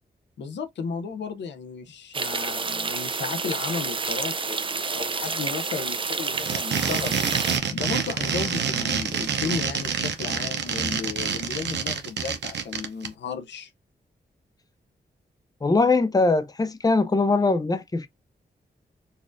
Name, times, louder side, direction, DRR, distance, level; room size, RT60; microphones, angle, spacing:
voice 1, 0.4-7.2 7.7-13.7, left 5 dB, 90° left, 0.6 m, -34 dB
sound 1, 2.1-7.6, right 4 dB, 30° right, 0.4 m, -29 dB
sound 2, 6.3-13.1, right 6 dB, 80° right, 0.7 m, -27 dB
voice 2, 15.6-18.1, left 3 dB, 20° left, 0.6 m, -21 dB
4.1 x 2.4 x 2.5 m
cardioid pair, 75°, 18 cm